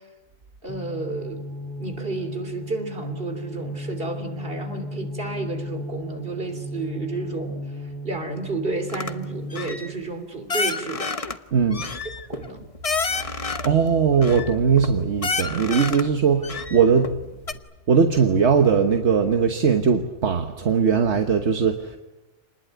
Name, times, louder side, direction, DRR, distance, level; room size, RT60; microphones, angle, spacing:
voice 1, 0.6-1.4 1.8-11.1 12.3-12.7, right 3 dB, 55° right, 7 dB, 3.4 m, -31 dB
sound 1, 0.7-10.0, equal, 5° right, 3.5 m, -35 dB
sound 2, 8.9-9.1 9.5-9.9 10.5-11.4 11.7-13.8 14.2-14.9 15.2-16.1 16.4-17.1 17.5-17.6, left 4 dB, 35° left, 1.0 m, -29 dB
voice 2, 11.5-11.9 13.6-17.1 17.9-22.0, right 6 dB, 75° right, 6 dB, 1.5 m, -20 dB
27.5 x 20.0 x 9.3 m, 1.1 s
omnidirectional pair, 1.2 m